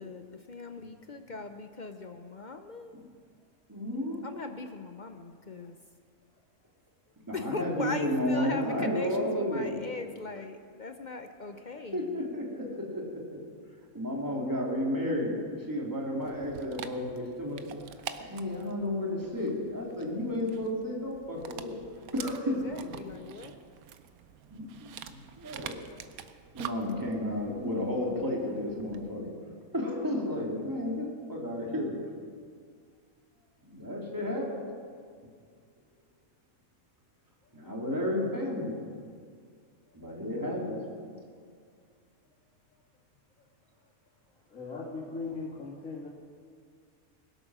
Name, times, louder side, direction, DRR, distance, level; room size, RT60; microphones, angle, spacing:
voice 1, 0.0-3.0 4.2-5.8 7.3-12.3 22.4-23.7, left 3 dB, 50° left, 7 dB, 0.6 m, -40 dB
voice 2, 3.7-4.2 7.3-9.8 11.9-13.4 13.9-17.6 18.1-21.8 22.1-22.9 24.5-25.8 26.5-29.3 29.7-32.0 33.6-34.5 37.5-38.7 39.9-40.8, left 1 dB, 15° right, -2 dB, 2.7 m, -32 dB
Dog, 16.2-29.1, right 8 dB, 85° right, 1.2 m, -46 dB
voice 3, 37.4-37.8 39.9-40.0 42.2-42.3 42.7-42.8 43.4-43.5 43.8-43.9 44.3-46.1, left 4 dB, 70° left, -9 dB, 2.8 m, -41 dB
21.5 x 8.1 x 6.1 m, 2.1 s
omnidirectional pair, 1.5 m